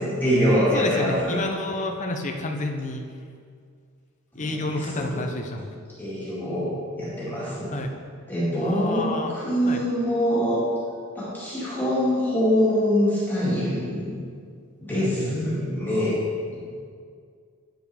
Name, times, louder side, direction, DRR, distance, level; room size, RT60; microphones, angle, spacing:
voice 1, 0.0-1.4 4.3-5.2 6.0-7.7 8.3-10.7 11.1-14.1 14.8-16.1 16.5-16.6, equal, 10° left, -10 dB, 2.2 m, -24 dB
voice 2, 0.7-3.0 4.3-5.8 7.7-7.9 8.6-9.4 9.7-9.8 14.9-15.4, left 2 dB, 35° left, 3 dB, 0.6 m, -30 dB
9.1 x 7.1 x 3.5 m, 2.1 s
head